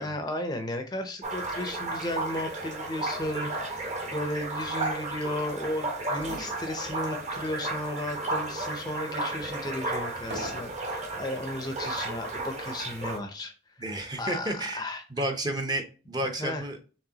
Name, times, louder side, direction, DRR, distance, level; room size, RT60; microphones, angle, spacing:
voice 1, 0.0-13.8 14.2-15.0 16.4-16.7, left 1 dB, 20° left, 6 dB, 0.5 m, -34 dB
sound 1, 1.2-13.2, right 2 dB, 40° right, 1.0 m, -33 dB
sound 2, 6.1-7.2 7.7-7.8 8.5-11.0 11.8-12.2, equal, 75° right, 2.4 m, -44 dB
voice 2, 13.8-14.8 15.1-16.8, right 1 dB, 20° right, 5 dB, 0.6 m, -31 dB
4.7 x 3.5 x 2.8 m, 0.36 s
head